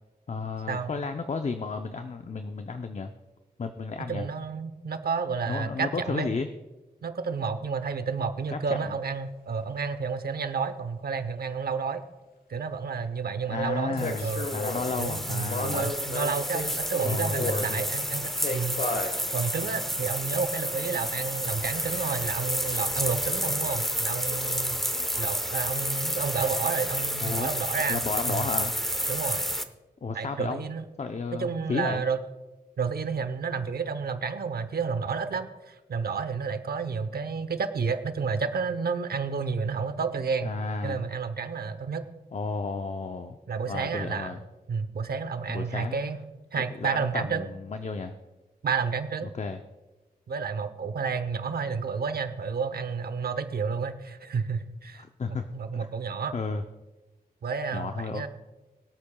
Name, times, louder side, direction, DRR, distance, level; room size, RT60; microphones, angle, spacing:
voice 1, 0.3-3.1 3.6-4.3 5.5-6.5 8.5-8.6 8.8-8.9 13.5-15.9 17.0-17.8 27.2-27.5 27.9-28.7 30.0-30.6 31.0-32.0 40.4-41.1 42.3-43.4 43.7-44.4 45.5-45.9 46.6-48.2 49.3-49.6 55.0-55.4 56.3-56.6 57.7-58.3, left 4 dB, 45° left, 7 dB, 0.6 m, -32 dB
voice 2, 4.1-6.3 7.0-12.0 12.5-14.5 15.0-18.8 19.3-24.8 25.2-28.4 29.1-29.5 30.1-30.8 31.3-32.2 32.8-40.5 40.8-42.0 43.5-44.4 44.7-46.3 46.5-47.5 48.6-49.3 50.3-55.0 55.5-56.4 57.4-58.3, right 5 dB, 70° right, 10 dB, 0.8 m, -30 dB
sound 1, 9.0-9.1 13.9-14.9 15.4-17.7 18.4-19.1 20.0-20.1, left 2 dB, 65° left, 1.4 m, -33 dB
sound 2, 14.0-29.6, equal, ahead, 0.8 m, -30 dB
24.0 x 8.5 x 2.3 m, 1.1 s
cardioid pair, 65°, 16 cm